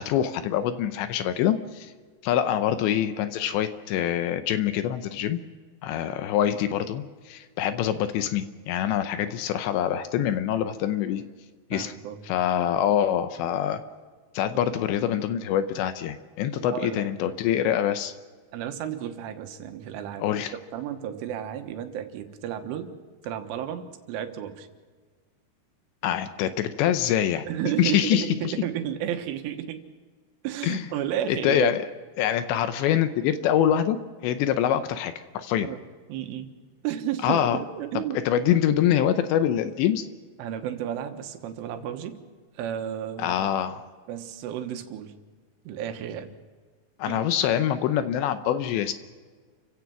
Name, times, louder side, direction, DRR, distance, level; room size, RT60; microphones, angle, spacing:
voice 1, 0.0-1.9 2.2-5.4 5.8-11.2 11.7-11.9 12.2-13.8 14.3-18.1 20.2-20.5 26.0-27.5 27.8-28.5 30.6-30.8 31.3-31.8 32.2-34.0 34.2-35.7 37.2-37.6 38.3-40.1 43.2-43.8 47.0-48.9, left 10 dB, 75° left, 10 dB, 2.8 m, -25 dB
voice 2, 11.7-12.2 14.5-14.6 15.4-15.5 16.5-17.1 18.5-20.2 20.5-22.9 23.2-24.7 27.5-29.8 30.4-31.8 35.6-35.8 36.1-36.5 36.8-38.2 40.4-42.2 42.6-43.5 44.1-45.1 45.7-46.3 47.1-47.3, right 10 dB, 90° right, 6 dB, 3.8 m, -32 dB
29.5 x 16.0 x 6.0 m, 1.5 s
omnidirectional pair, 5.6 m